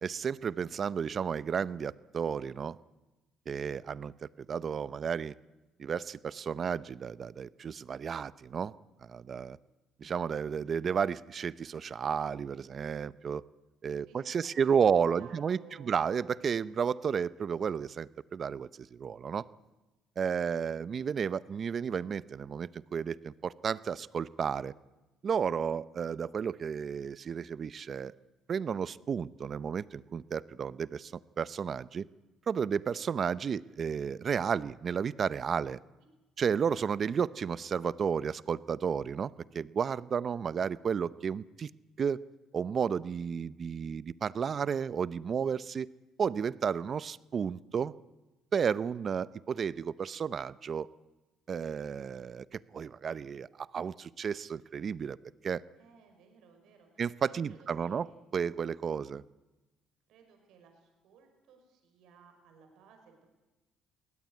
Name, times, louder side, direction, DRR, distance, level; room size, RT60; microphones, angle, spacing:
voice 1, 0.0-2.8 3.5-5.3 5.8-8.7 9.0-9.6 10.0-13.4 13.8-19.5 20.2-24.7 25.2-28.1 28.5-32.1 32.5-35.8 36.4-41.7 42.0-42.2 42.5-45.9 46.2-47.9 48.5-50.9 51.5-55.2 55.4-55.6 57.0-58.1 58.3-59.2, right 7 dB, 45° right, 18 dB, 0.7 m, -32 dB
voice 2, 14.0-14.7 15.1-16.0 55.8-58.3 60.1-63.3, right 5 dB, 75° right, 4 dB, 5.6 m, -58 dB
22.0 x 17.0 x 9.7 m, 1.1 s
cardioid pair, 85°, 0 cm